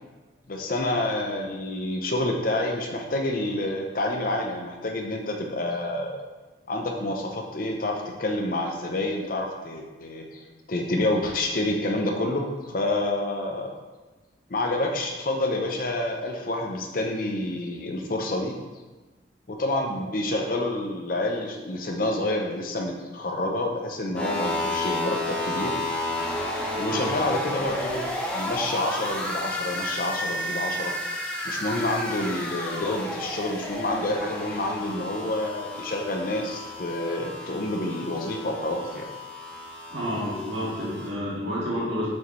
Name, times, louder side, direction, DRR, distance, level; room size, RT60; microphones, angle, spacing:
voice 1, 0.5-6.2 6.7-13.7 14.5-18.5 19.5-25.8 26.8-30.9 31.4-39.0, left 1 dB, 45° left, 2 dB, 0.6 m, -28 dB
sound 1, 24.1-41.1, left 1 dB, 5° left, 0.8 m, -32 dB
voice 2, 26.8-27.1 39.9-42.1, equal, 70° right, -8 dB, 1.9 m, -30 dB
7.0 x 6.4 x 3.1 m, 1.2 s
head